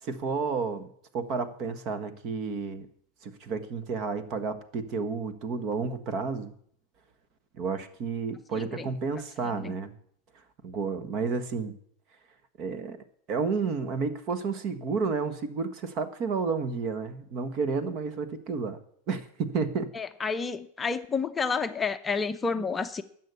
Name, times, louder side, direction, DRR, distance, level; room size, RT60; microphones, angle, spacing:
voice 1, 0.0-0.8 1.1-2.9 3.2-6.5 7.6-9.9 10.6-11.7 12.6-18.8 19.1-19.9, right 5 dB, 45° right, 1.5 m, -31 dB
voice 2, 19.9-23.0, left 5 dB, 15° left, 0.7 m, -30 dB
12.5 x 7.7 x 8.2 m
supercardioid pair, 125°, 0 cm